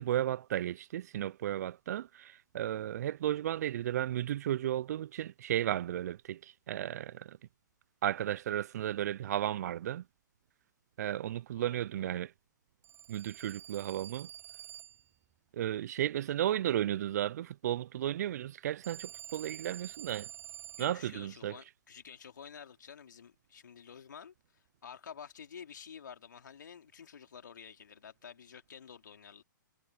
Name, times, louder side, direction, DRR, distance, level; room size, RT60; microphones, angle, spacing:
voice 1, 0.0-7.4 8.0-10.0 11.0-12.3 13.1-14.3 15.5-20.3 20.8-21.5, right 12 dB, 55° right, 0.7 m, -34 dB
voice 2, 11.6-12.2 20.8-29.4, left 7 dB, 70° left, 3.1 m, -50 dB
Telephone, 12.8-15.1 18.8-21.0, right 11 dB, 20° right, 5.5 m, -48 dB
figure-of-eight pair, 120°, 11 cm